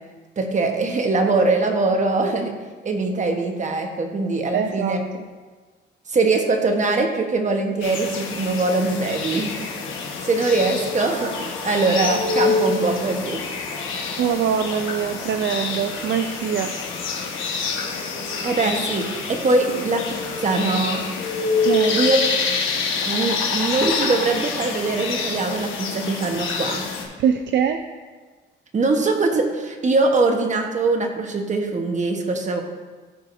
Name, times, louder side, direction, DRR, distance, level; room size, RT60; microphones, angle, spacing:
voice 1, 0.4-2.5 2.8-5.0 6.1-9.5 10.2-13.4 18.1-20.0 20.4-21.0 21.9-22.2 23.0-26.8 28.7-32.6, right 3 dB, 40° right, 3 dB, 1.2 m, -22 dB
voice 2, 4.5-5.3 14.2-16.7 19.7-19.8 21.6-22.0 27.2-27.8, right 8 dB, 65° right, 7 dB, 0.5 m, -23 dB
sound 1, 7.8-27.0, left 4 dB, 85° left, 1.3 m, -26 dB
14.0 x 4.8 x 2.7 m, 1.4 s
cardioid pair, 90°, 20 cm